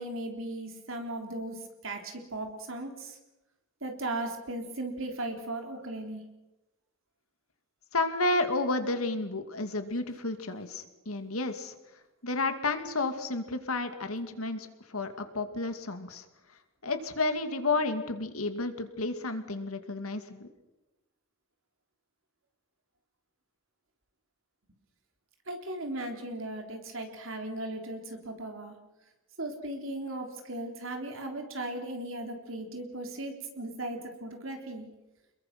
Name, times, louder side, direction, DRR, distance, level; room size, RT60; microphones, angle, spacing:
voice 1, 0.0-3.2 3.8-6.2 25.5-28.7 29.4-34.9, right 1 dB, 65° right, 4 dB, 3.6 m, -37 dB
voice 2, 7.9-11.7 12.2-16.3 16.8-20.5, left 2 dB, 85° left, 7 dB, 2.4 m, -31 dB
27.5 x 22.0 x 6.1 m, 1.0 s
head